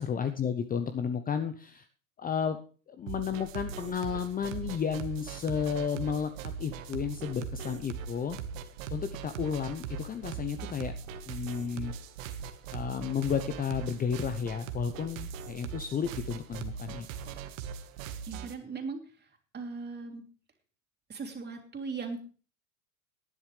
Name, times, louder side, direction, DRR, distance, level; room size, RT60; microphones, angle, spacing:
voice 1, 0.0-1.9 2.2-2.6 3.0-8.4 8.9-10.9 11.3-11.9 12.7-17.1, left 7 dB, 20° left, 10 dB, 0.7 m, -32 dB
sound 1, 3.1-18.5, right 7 dB, 65° right, 1.6 m, -40 dB
voice 2, 18.2-19.3 19.5-20.2 21.1-22.2, right 4 dB, 25° right, 4 dB, 3.0 m, -38 dB
19.0 x 10.0 x 3.3 m, 0.38 s
hypercardioid pair, 95°, 43 cm